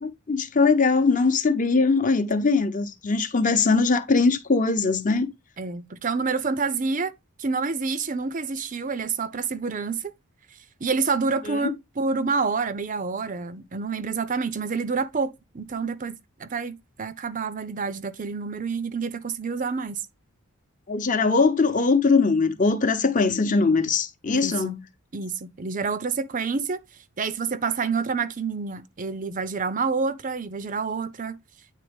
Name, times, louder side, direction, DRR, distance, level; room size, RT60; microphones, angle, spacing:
voice 1, 0.0-5.3 11.5-11.7 20.9-24.8, left 4 dB, 35° left, 0.8 m, -21 dB
voice 2, 5.6-7.1 7.4-10.1 10.8-20.0 24.3-24.8 25.1-26.8 27.2-31.4, right 4 dB, 35° right, 0.5 m, -28 dB
9.2 x 3.9 x 3.4 m
head